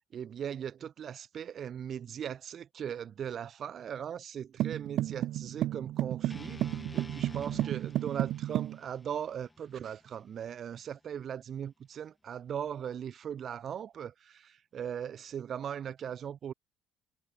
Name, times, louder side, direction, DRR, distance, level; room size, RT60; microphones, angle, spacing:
voice 1, 0.1-6.6 6.9-16.5, right 8 dB, 50° right, 1.4 m, -39 dB
sound 1, 4.6-8.8, right 14 dB, 65° right, 0.5 m, -32 dB
sound 2, 6.3-10.4, left 2 dB, 15° left, 6.4 m, -49 dB
supercardioid pair, 90°, 0 cm